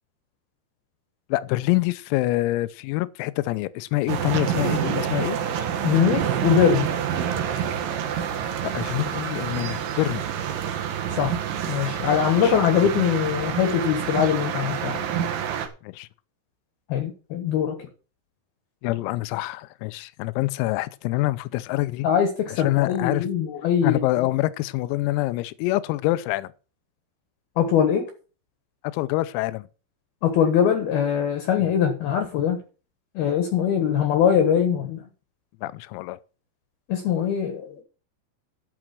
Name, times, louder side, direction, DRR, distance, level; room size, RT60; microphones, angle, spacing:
voice 1, 1.3-5.4 8.6-10.2 12.4-12.9 15.8-16.1 18.8-22.1 22.6-23.3 23.8-26.5 28.9-29.7 31.6-31.7 35.6-36.2, left 18 dB, 90° left, 3.4 m, -26 dB
sound 1, 4.1-15.7, right 9 dB, 85° right, 1.9 m, -27 dB
voice 2, 5.8-6.9 11.2-11.4 11.7-15.1 16.9-17.8 22.0-24.0 27.6-28.1 30.2-32.6 33.2-35.0 36.9-37.8, left 8 dB, 65° left, 2.7 m, -22 dB
12.5 x 6.2 x 6.0 m
omnidirectional pair, 6.0 m